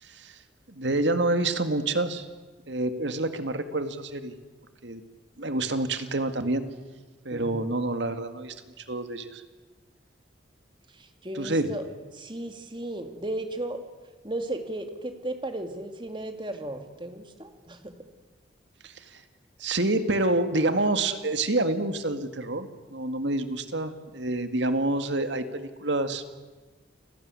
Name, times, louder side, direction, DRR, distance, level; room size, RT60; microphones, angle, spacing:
voice 1, 0.0-0.4 0.7-2.3 2.7-4.3 4.8-5.0 5.4-6.6 7.2-9.4 11.3-11.7 18.8-19.2 19.6-26.2, right 2 dB, 70° right, 9 dB, 2.1 m, -28 dB
voice 2, 7.3-7.7 11.0-11.8 12.1-13.8 14.2-18.0, right 1 dB, 25° right, 6 dB, 2.4 m, -35 dB
29.5 x 19.5 x 9.8 m, 1.3 s
head